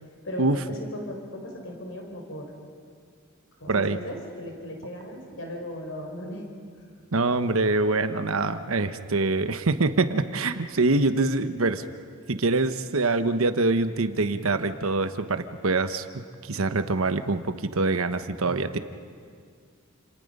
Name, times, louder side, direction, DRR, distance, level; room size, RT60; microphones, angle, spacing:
voice 1, 0.2-2.5 3.6-6.5, left 1 dB, 60° left, 2 dB, 4.2 m, -37 dB
voice 2, 7.1-11.8 12.3-16.1 16.4-18.8, right 3 dB, 70° right, 10 dB, 1.1 m, -24 dB
29.5 x 27.5 x 5.5 m, 2.1 s
head